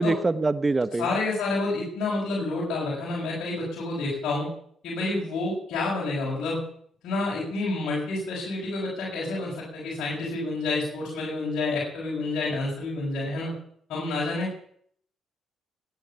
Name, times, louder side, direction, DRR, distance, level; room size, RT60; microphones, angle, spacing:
voice 1, 0.0-1.1, right 3 dB, 25° right, 14 dB, 1.1 m, -24 dB
voice 2, 1.0-4.5 4.8-6.6 7.0-13.5 13.9-14.5, left 2 dB, 75° left, -5 dB, 6.3 m, -29 dB
18.5 x 9.9 x 7.1 m, 0.65 s
cardioid pair, 85°, 0 cm